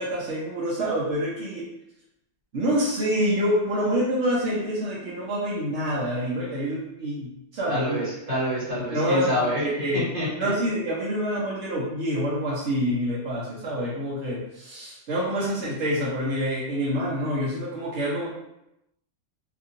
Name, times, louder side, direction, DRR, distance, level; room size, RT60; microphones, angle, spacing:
voice 1, 0.0-1.6 2.5-8.0 8.9-10.1 10.3-18.3, equal, 60° right, -7 dB, 1.0 m, -27 dB
voice 2, 7.7-9.6 9.9-10.5, left 1 dB, 40° right, -11 dB, 1.4 m, -27 dB
2.9 x 2.6 x 2.6 m, 0.84 s
omnidirectional pair, 1.4 m